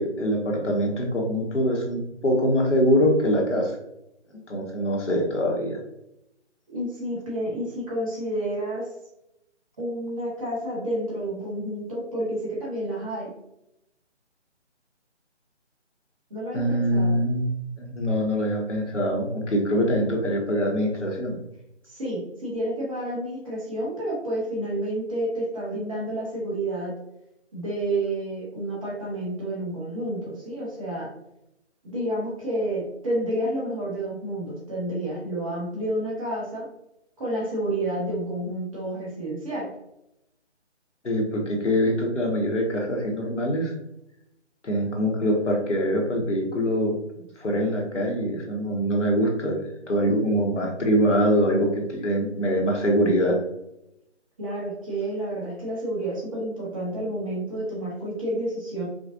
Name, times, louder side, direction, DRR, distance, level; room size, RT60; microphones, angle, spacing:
voice 1, 0.0-3.7 4.5-5.8 16.5-17.5 17.8-21.4 41.0-43.7 44.6-46.9 47.4-53.4, equal, 80° left, 0 dB, 1.3 m, -24 dB
voice 2, 6.7-8.9 9.8-13.3 16.3-17.2 21.9-27.0 27.5-31.1 31.8-36.7 37.2-39.7 54.4-58.9, right 1 dB, 30° right, -5 dB, 1.3 m, -30 dB
5.0 x 2.4 x 2.6 m, 0.83 s
figure-of-eight pair, 155°, 35 cm